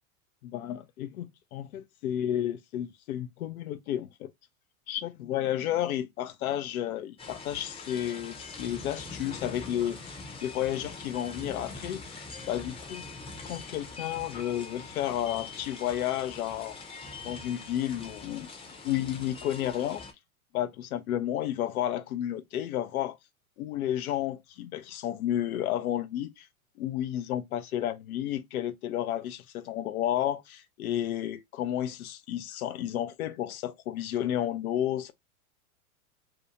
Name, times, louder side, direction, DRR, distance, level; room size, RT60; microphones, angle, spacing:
voice 1, 0.4-4.3 4.9-10.0 10.4-12.0 12.5-13.0 13.4-16.8 17.2-18.5 18.8-20.0 20.5-23.2 23.6-26.5 26.8-35.1, left 11 dB, 75° left, 0.6 m, -32 dB
sound 1, 7.2-20.1, left 3 dB, 15° left, 0.6 m, -43 dB
2.7 x 2.2 x 2.6 m
hypercardioid pair, 110°, 43 cm